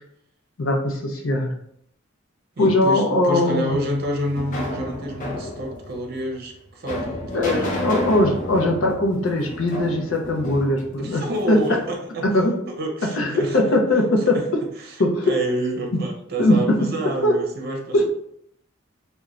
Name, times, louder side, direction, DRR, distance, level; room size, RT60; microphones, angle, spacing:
voice 1, 0.6-1.5 2.6-3.8 7.3-11.6 12.2-12.6 13.2-14.4 15.0-15.3 16.4-16.9 17.2-17.4 17.9-18.0, left 1 dB, 85° left, 2 dB, 0.5 m, -20 dB
voice 2, 2.6-7.9 11.0-12.3 12.8-13.6 14.3-14.4 14.8-18.1, right 1 dB, 55° right, 1 dB, 0.6 m, -28 dB
sound 1, 3.7-11.8, left 1 dB, 40° left, 0.6 m, -32 dB
2.4 x 2.2 x 3.0 m, 0.72 s
head